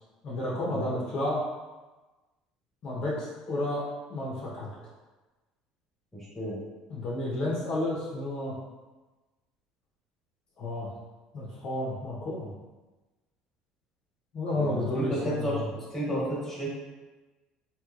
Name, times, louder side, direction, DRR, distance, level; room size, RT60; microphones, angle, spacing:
voice 1, 0.2-1.4 2.8-3.8 4.1-4.7 6.9-8.6 10.6-10.9 11.3-12.5 14.3-15.6, left 1 dB, 50° left, -5 dB, 0.7 m, -31 dB
voice 2, 6.1-6.6 14.5-16.7, right 1 dB, 10° left, -7 dB, 1.3 m, -32 dB
3.1 x 3.1 x 2.4 m, 1.2 s
cardioid pair, 115°, 2 cm